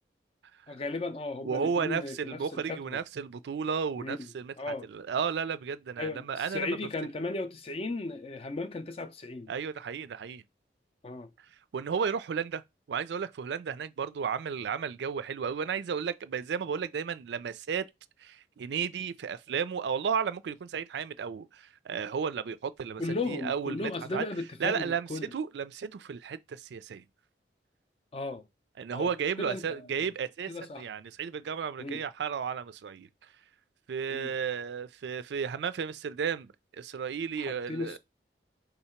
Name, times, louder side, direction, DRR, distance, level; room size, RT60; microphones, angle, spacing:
voice 1, 0.7-3.0 4.0-4.3 4.6-4.9 6.0-9.5 11.0-11.3 23.0-25.3 28.1-28.4 28.9-29.9 30.5-30.9 31.8-32.0 34.1-34.3 37.4-38.0, left 2 dB, 35° left, 0.5 m, -36 dB
voice 2, 1.4-6.8 9.5-10.4 11.7-12.6 12.9-17.9 18.2-23.0 23.3-24.2 24.6-27.0 28.8-30.5 30.8-33.1 33.9-38.0, right 6 dB, 70° right, 0.3 m, -33 dB
3.7 x 2.8 x 4.3 m
head